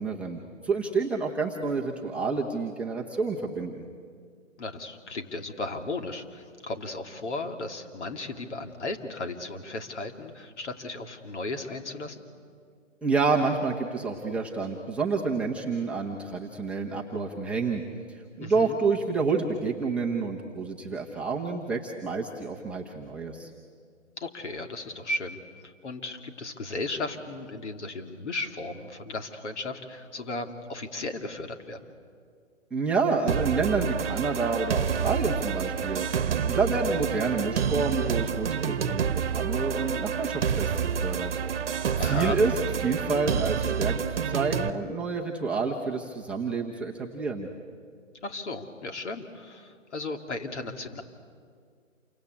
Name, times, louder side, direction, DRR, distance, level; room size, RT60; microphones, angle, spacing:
voice 1, 0.0-3.8 13.0-17.8 18.1-23.5 32.7-41.3 42.0-42.5 42.8-47.5, right 4 dB, 5° right, -4 dB, 0.9 m, -29 dB
voice 2, 4.6-12.2 18.4-18.8 24.2-25.4 25.6-31.8 42.0-42.4 48.2-51.0, left 2 dB, 60° left, 5 dB, 2.9 m, -35 dB
sound 1, 33.3-44.7, right 7 dB, 50° right, 1.2 m, -28 dB
28.5 x 24.5 x 8.4 m, 2.1 s
figure-of-eight pair, 145°, 39 cm